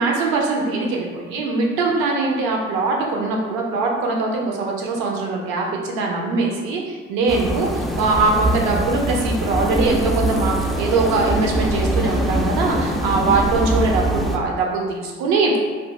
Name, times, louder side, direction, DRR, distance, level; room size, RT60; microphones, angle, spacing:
voice 1, 0.0-15.6, right 3 dB, 70° right, 0 dB, 0.7 m, -22 dB
sound 1, 7.3-14.4, right 1 dB, ahead, 0.3 m, -23 dB
3.3 x 2.2 x 3.1 m, 1.5 s
hypercardioid pair, 50°, 38 cm